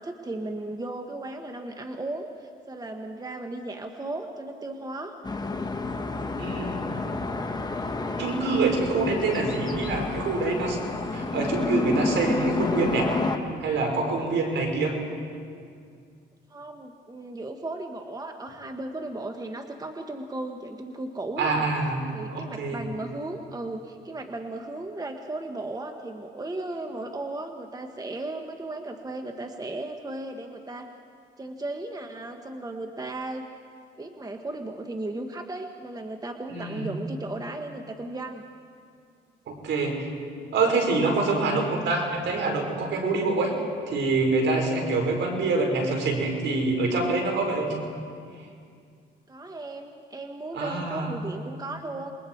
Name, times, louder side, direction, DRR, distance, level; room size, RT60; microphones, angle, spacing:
voice 1, 0.0-5.1 16.5-21.7 22.1-30.9 31.4-33.4 34.0-38.4 49.3-52.1, right 2 dB, 20° right, 5 dB, 1.3 m, -35 dB
sound 1, 5.2-13.4, left 3 dB, 20° left, 1.5 m, -29 dB
voice 2, 6.3-6.8 8.2-10.8 11.1-13.2 13.6-14.9 21.4-22.8 36.5-36.9 39.5-40.1 40.5-43.5 43.9-47.8 50.5-51.1, right 3 dB, 70° right, 1 dB, 4.8 m, -26 dB
27.5 x 21.5 x 4.6 m, 2.2 s
cardioid pair, 90°, 20 cm